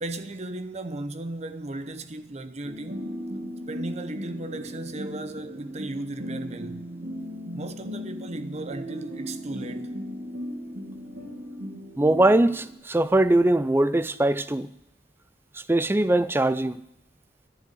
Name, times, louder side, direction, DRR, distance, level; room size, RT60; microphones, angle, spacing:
voice 1, 0.0-3.2 3.7-6.9 7.5-9.9, right 2 dB, 35° right, 0.7 m, -36 dB
sound 1, 2.6-12.7, equal, 80° right, 2.3 m, -37 dB
voice 2, 12.0-14.7 15.5-16.8, right 1 dB, 10° right, 0.4 m, -21 dB
11.0 x 7.3 x 9.6 m
head